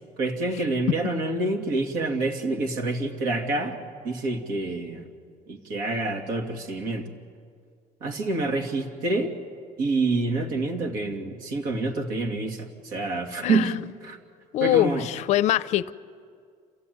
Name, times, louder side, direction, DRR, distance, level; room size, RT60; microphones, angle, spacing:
voice 1, 0.2-5.1 5.5-7.1 8.0-9.3 9.8-13.7 14.0-14.2 14.6-15.1, right 3 dB, 75° right, 2.6 m, -27 dB
voice 2, 13.4-13.8 14.5-15.9, left 13 dB, 55° left, 0.5 m, -23 dB
27.5 x 15.5 x 9.4 m
cardioid pair, 170°, 14 cm